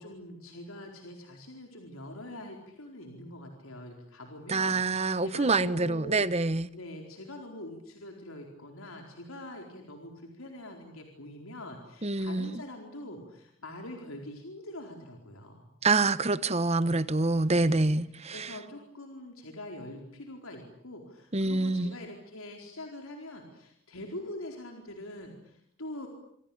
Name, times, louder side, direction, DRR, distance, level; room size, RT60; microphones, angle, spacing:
voice 1, 0.0-6.3 6.7-15.7 17.5-17.9 18.3-26.1, left 1 dB, 85° left, 4.4 m, -44 dB
voice 2, 4.5-6.7 12.0-12.6 15.8-18.5 21.3-22.0, right 3 dB, 30° right, 1.1 m, -26 dB
27.0 x 25.5 x 8.7 m
head